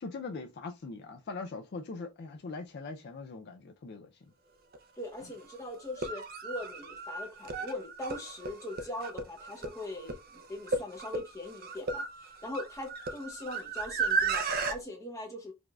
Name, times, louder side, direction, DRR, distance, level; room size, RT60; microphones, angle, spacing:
voice 1, 0.0-4.3, left 3 dB, 45° left, 0.3 m, -41 dB
sound 1, 4.7-4.8 5.8-14.8, right 4 dB, 40° right, 0.5 m, -34 dB
voice 2, 5.0-15.5, left 1 dB, 15° left, 0.7 m, -41 dB
4.9 x 2.5 x 2.2 m
head